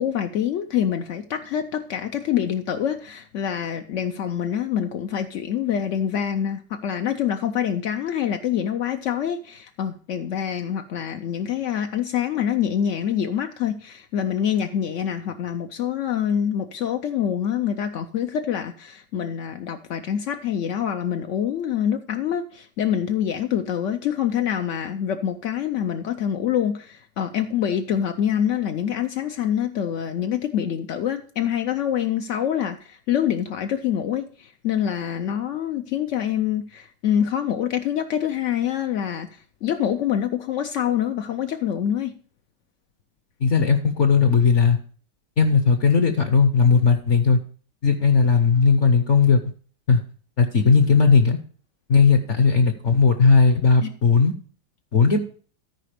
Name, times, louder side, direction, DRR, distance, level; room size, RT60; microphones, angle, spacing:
voice 1, 0.0-42.1 53.8-53.9, left 9 dB, 75° left, 0.7 m, -25 dB
voice 2, 43.4-44.8 45.4-47.4 47.8-49.4 49.9-50.0 50.4-51.4 51.9-54.3 54.9-55.2, left 5 dB, 55° left, 1.0 m, -17 dB
13.5 x 4.9 x 5.0 m
omnidirectional pair, 1.9 m